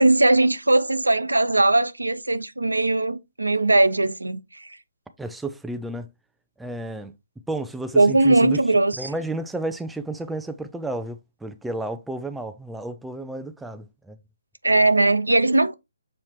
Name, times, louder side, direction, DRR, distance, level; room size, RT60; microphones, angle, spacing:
voice 1, 0.0-4.7 8.0-9.1 14.6-15.7, right 2 dB, 80° right, 0.9 m, -19 dB
voice 2, 5.2-6.1 6.6-7.2 7.5-8.6 9.0-14.2, right 2 dB, 5° right, 0.4 m, -32 dB
7.1 x 4.3 x 3.1 m
figure-of-eight pair, 140°, 0 cm